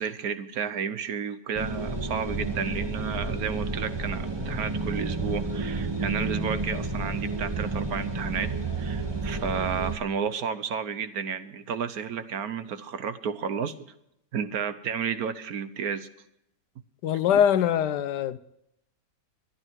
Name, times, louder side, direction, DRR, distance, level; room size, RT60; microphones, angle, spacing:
voice 1, 0.0-8.5 8.8-13.7 14.3-16.1 17.3-17.4, right 7 dB, 65° right, 1.3 m, -32 dB
sound 1, 1.5-10.0, right 3 dB, 15° right, 1.3 m, -31 dB
voice 2, 17.0-18.4, left 9 dB, 75° left, 1.3 m, -23 dB
23.5 x 10.0 x 4.6 m
omnidirectional pair, 1.8 m